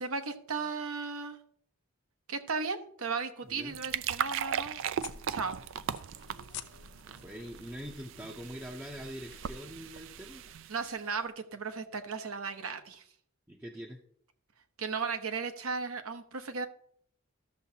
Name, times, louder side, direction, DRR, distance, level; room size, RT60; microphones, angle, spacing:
voice 1, 0.0-1.4 2.3-4.8 5.3-5.6 10.7-13.0 14.8-16.7, right 4 dB, 75° right, 7 dB, 0.9 m, -35 dB
voice 2, 3.5-3.8 7.1-10.4 13.5-14.0, equal, 10° right, 0 dB, 0.6 m, -43 dB
sound 1, 3.5-11.0, right 8 dB, 60° right, 0.3 m, -38 dB
sound 2, 5.0-10.6, left 8 dB, 50° left, 0.6 m, -51 dB
13.5 x 6.8 x 2.8 m, 0.63 s
head